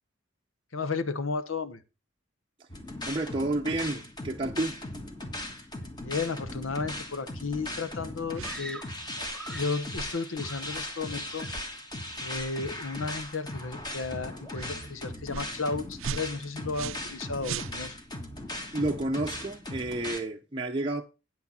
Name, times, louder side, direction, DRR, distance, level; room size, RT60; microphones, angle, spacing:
voice 1, 0.7-1.8 6.0-8.8 9.1-11.5 12.2-18.0, left 4 dB, 80° left, 1.0 m, -33 dB
sound 1, 2.7-20.2, left 1 dB, 20° left, 1.5 m, -38 dB
voice 2, 3.0-4.8 18.7-21.0, right 2 dB, 25° right, 0.7 m, -30 dB
sound 2, 8.3-8.6 9.2-9.4 9.9-10.1 10.7-10.9 11.5-11.7 12.3-12.5 13.2-13.3 13.8-14.0 14.5-14.7 15.3-15.6 16.0-17.1 17.4-18.1, right 7 dB, 80° right, 0.5 m, -39 dB
Screaming, 8.4-9.8 10.4-11.0 11.3-11.7, right 1 dB, 5° left, 1.0 m, -45 dB
9.1 x 8.4 x 4.2 m
head